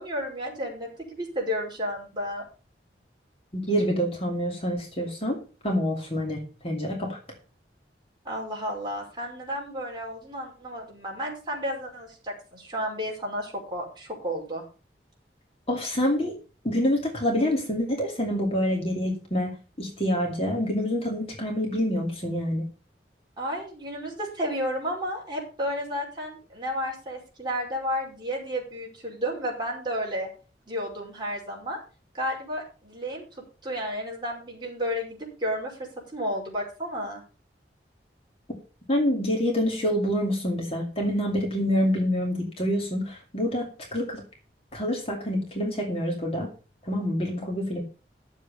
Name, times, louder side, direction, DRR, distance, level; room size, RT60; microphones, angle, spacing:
voice 1, 0.0-2.4 8.2-14.6 23.4-30.3 30.7-31.8 32.1-37.2, equal, 25° right, -2 dB, 5.1 m, -32 dB
voice 2, 3.5-5.4 5.6-7.2 15.7-16.4 16.6-19.5 19.8-22.6 38.9-44.2 44.7-46.5 46.9-47.8, equal, 35° left, 1 dB, 2.5 m, -26 dB
11.5 x 7.6 x 5.5 m, 0.35 s
head